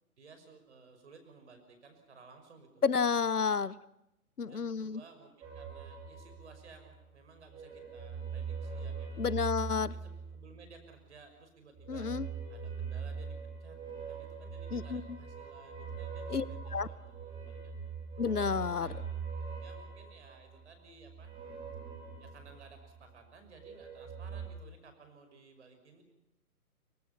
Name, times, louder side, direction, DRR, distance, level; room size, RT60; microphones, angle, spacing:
voice 1, 0.2-2.9 3.4-3.8 4.4-9.5 9.8-12.1 12.5-17.8 18.6-19.2 19.5-21.4 22.2-26.0, right 4 dB, 45° right, 7 dB, 5.8 m, -57 dB
voice 2, 2.8-3.8 4.4-5.0 9.2-9.9 11.9-12.3 14.7-15.0 16.3-16.4 16.7-16.9 18.2-18.9, left 5 dB, 75° left, 21 dB, 0.9 m, -30 dB
sound 1, 5.4-7.0 7.4-10.9 11.7-23.1 23.4-24.5, right 5 dB, 10° right, 4.3 m, -42 dB
26.5 x 24.5 x 5.8 m, 0.84 s
figure-of-eight pair, 135°, 46 cm